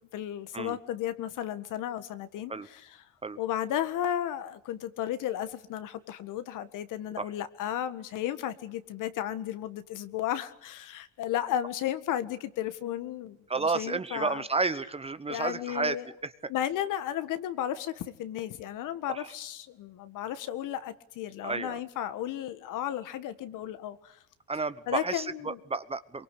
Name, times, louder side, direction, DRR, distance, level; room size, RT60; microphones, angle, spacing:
voice 1, 0.0-3.0 3.4-14.4 15.3-16.1 16.5-24.2 24.9-25.6, left 11 dB, 60° left, 12 dB, 1.7 m, -34 dB
voice 2, 13.5-16.0 16.2-16.5 19.1-19.3 21.4-21.8 24.5-26.2, right 4 dB, 15° right, 13 dB, 1.0 m, -31 dB
23.5 x 23.5 x 8.5 m, 0.72 s
supercardioid pair, 110°, 35 cm